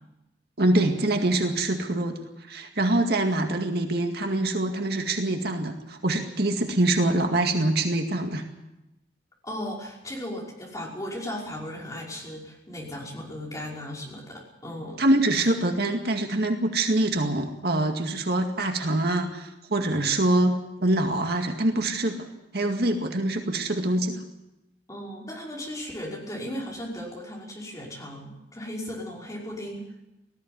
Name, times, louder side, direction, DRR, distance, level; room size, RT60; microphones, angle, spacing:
voice 1, 0.6-2.2 2.5-8.4 15.0-22.3 22.5-24.2, right 1 dB, 60° right, 4 dB, 2.1 m, -24 dB
voice 2, 9.4-15.0 15.4-15.5 24.9-29.8, left 1 dB, 20° left, -3 dB, 5.4 m, -36 dB
18.5 x 15.0 x 9.6 m, 0.95 s
head